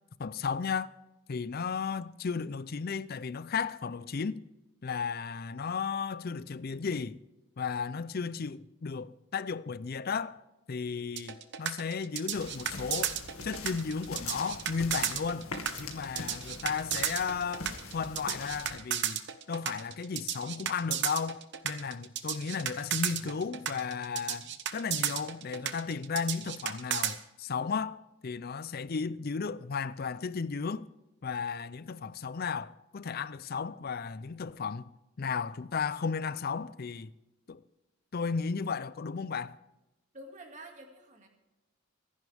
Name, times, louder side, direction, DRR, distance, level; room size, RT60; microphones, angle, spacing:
voice 1, 0.2-0.9 1.3-4.4 4.8-7.2 7.6-10.4 10.7-15.5 15.8-19.2 19.5-30.9 31.2-34.9 35.2-37.1 37.5-37.6 38.1-39.6, left 5 dB, 45° left, 0.5 m, -34 dB
sound 1, 11.2-27.1, right 10 dB, 55° right, 1.0 m, -33 dB
sound 2, 12.3-18.8, left 4 dB, 75° left, 2.0 m, -43 dB
voice 2, 40.1-41.3, right 1 dB, 35° right, 2.3 m, -48 dB
25.0 x 11.0 x 3.5 m
head